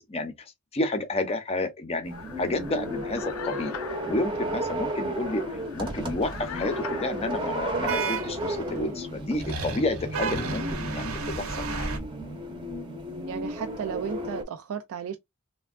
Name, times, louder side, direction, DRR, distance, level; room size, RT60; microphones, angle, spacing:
voice 1, 0.0-3.8 4.1-12.0, left 2 dB, 30° left, 0.6 m, -31 dB
sound 1, 2.0-14.4, right 1 dB, 20° right, 0.7 m, -34 dB
sound 2, 2.1-7.8, left 7 dB, 70° left, 0.4 m, -42 dB
sound 3, 6.2-6.9 7.9-8.8 9.4-12.0, right 4 dB, 90° right, 1.1 m, -32 dB
voice 2, 13.3-15.2, right 7 dB, 70° right, 0.4 m, -34 dB
3.4 x 2.2 x 2.3 m
head